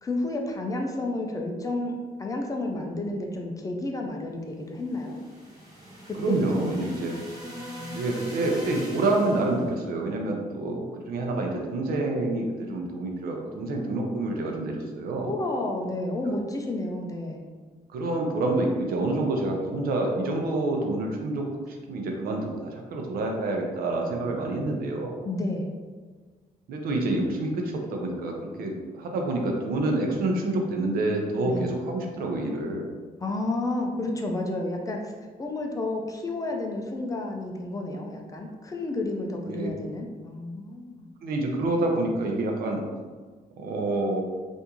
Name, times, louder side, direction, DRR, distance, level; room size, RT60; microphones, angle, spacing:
voice 1, 0.0-1.9 2.2-5.2 6.1-6.9 7.7-8.1 15.2-17.4 25.2-25.7 31.4-31.6 33.2-35.1 35.4-41.1, left 2 dB, 20° left, 1 dB, 0.4 m, -31 dB
sound 1, 4.7-9.7, equal, 20° right, 1.3 m, -41 dB
voice 2, 6.2-7.2 7.9-15.3 16.2-16.3 17.9-25.1 26.7-32.9 39.5-39.7 41.2-42.8 43.6-44.2, right 2 dB, 85° right, 1 dB, 0.6 m, -27 dB
3.5 x 2.6 x 2.9 m, 1.4 s
cardioid pair, 145°, 15 cm